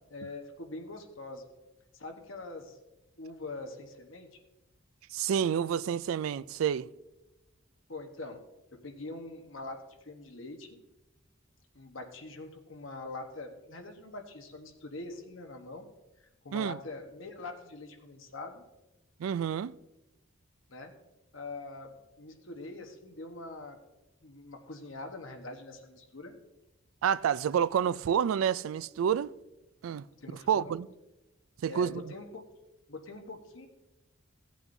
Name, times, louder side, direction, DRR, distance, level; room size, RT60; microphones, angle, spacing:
voice 1, 0.1-1.5 1.9-2.8 3.2-4.3 7.9-8.4 8.8-10.8 11.7-15.9 16.2-18.6 20.7-20.9 21.3-23.8 24.2-26.3 30.2-30.8 31.7-32.4 32.9-33.7, left 2 dB, 70° left, 1.2 m, -43 dB
voice 2, 5.1-6.9 16.5-16.8 19.2-19.7 27.0-29.3 29.8-30.0 30.5-30.9 31.6-32.1, right 8 dB, 80° right, 0.3 m, -29 dB
16.0 x 8.3 x 2.7 m
head